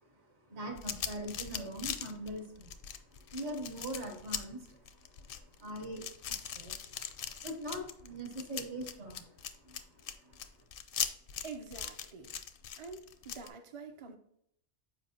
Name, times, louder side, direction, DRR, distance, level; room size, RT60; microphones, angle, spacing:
voice 1, 0.5-2.7 3.3-4.8 5.6-7.1 7.4-9.3 9.6-9.8 10.2-10.4, right 1 dB, 60° right, 2 dB, 1.6 m, -42 dB
sound 1, 0.7-13.5, left 8 dB, 60° left, 0.6 m, -40 dB
voice 2, 11.4-12.4 12.8-14.2, right 4 dB, 40° right, 5 dB, 0.5 m, -46 dB
7.6 x 4.9 x 2.8 m, 0.71 s
omnidirectional pair, 1.3 m